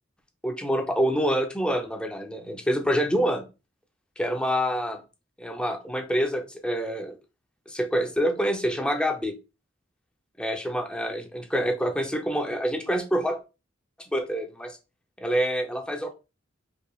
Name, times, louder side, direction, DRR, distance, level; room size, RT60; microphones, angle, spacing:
voice 1, 0.4-3.5 4.2-5.0 5.4-7.2 7.7-9.3 10.4-13.4 14.0-14.8 15.2-16.1, equal, 5° left, 4 dB, 0.6 m, -26 dB
4.7 x 3.2 x 2.3 m, 0.29 s
head